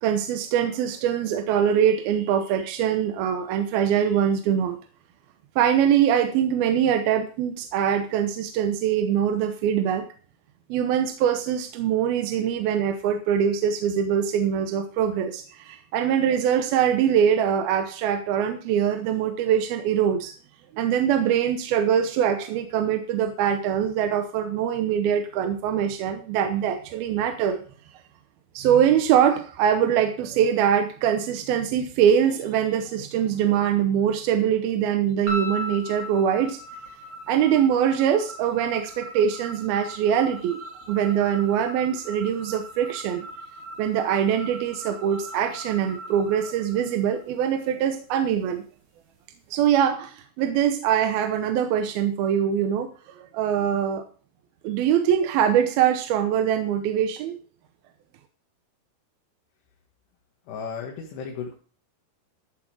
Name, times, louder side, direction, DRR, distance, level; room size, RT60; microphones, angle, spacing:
voice 1, 0.0-4.8 5.6-10.0 10.7-20.3 20.7-27.6 28.5-36.6 37.3-40.6 40.9-43.3 43.8-48.6 49.5-54.0 54.6-57.4, right 9 dB, 75° right, 6 dB, 2.6 m, -23 dB
sound 1, 35.3-47.6, equal, 50° right, 4.6 m, -39 dB
voice 2, 60.5-61.5, left 6 dB, 90° left, 0 dB, 3.9 m, -34 dB
14.0 x 7.7 x 4.9 m, 0.41 s
omnidirectional pair, 4.7 m